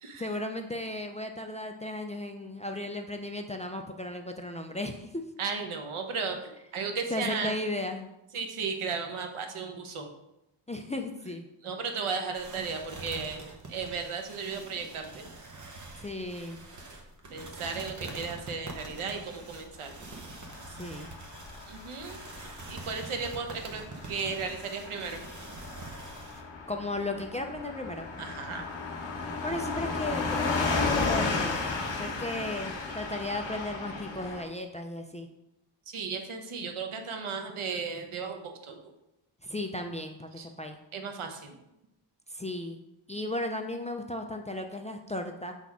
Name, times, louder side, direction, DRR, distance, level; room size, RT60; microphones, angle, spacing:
voice 1, 0.2-5.2 7.1-8.1 10.7-11.5 16.0-16.6 20.7-21.1 26.7-28.1 29.2-35.3 39.4-40.8 42.3-42.8 43.1-45.5, left 1 dB, 15° left, 5 dB, 0.3 m, -35 dB
voice 2, 5.4-7.6 8.3-10.1 11.6-15.3 17.3-19.9 21.7-22.2 22.7-25.2 28.2-28.7 35.9-38.8 40.4-40.5 40.9-41.6, right 5 dB, 85° right, 5 dB, 1.1 m, -35 dB
sound 1, 12.3-26.4, right 3 dB, 35° right, 1.0 m, -45 dB
Car passing by / Truck, 20.1-34.4, left 3 dB, 65° left, 1.3 m, -34 dB
6.8 x 4.1 x 4.7 m, 0.87 s
wide cardioid pair, 165°, 48 cm